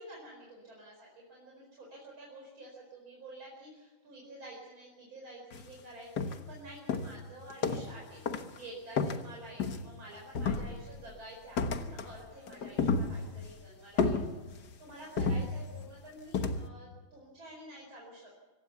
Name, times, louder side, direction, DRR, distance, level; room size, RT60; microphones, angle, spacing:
voice 1, 0.0-8.2 8.5-18.4, right 1 dB, 75° right, -2 dB, 5.4 m, -50 dB
sound 1, 5.5-5.7 6.2-6.6 6.9-8.0 8.3-8.6 9.0-10.0 10.3-11.1 11.6-12.2 12.5-13.5 14.0-14.7 15.2-15.9 16.3-16.7, left 4 dB, 55° left, 1.8 m, -32 dB
25.5 x 16.5 x 7.0 m, 1.2 s
omnidirectional pair, 2.2 m